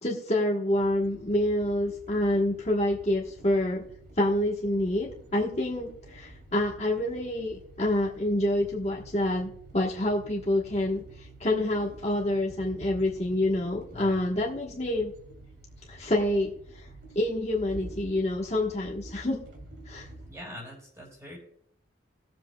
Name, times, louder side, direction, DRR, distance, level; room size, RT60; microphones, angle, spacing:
voice 1, 0.0-3.8 4.2-15.1 15.9-16.9 17.1-19.4 19.9-20.1, left 1 dB, 35° left, -2 dB, 1.2 m, -27 dB
sound 1, 0.7-20.3, right 2 dB, 60° right, 2.7 m, -48 dB
voice 2, 13.9-14.3 20.3-21.4, left 1 dB, 15° right, -2 dB, 4.4 m, -43 dB
19.5 x 7.6 x 2.3 m, 0.66 s
head